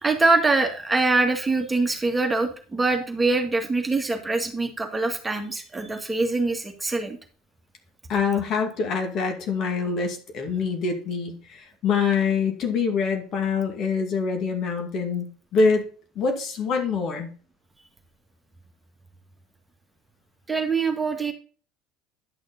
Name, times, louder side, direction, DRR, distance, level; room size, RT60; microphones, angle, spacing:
voice 1, 0.0-7.2 20.5-21.3, right 3 dB, 15° right, 4 dB, 1.9 m, -24 dB
voice 2, 8.1-15.8 16.2-17.3, left 5 dB, 50° left, 4 dB, 2.4 m, -25 dB
10.5 x 6.4 x 4.1 m, 0.39 s
hypercardioid pair, 70°, 0 cm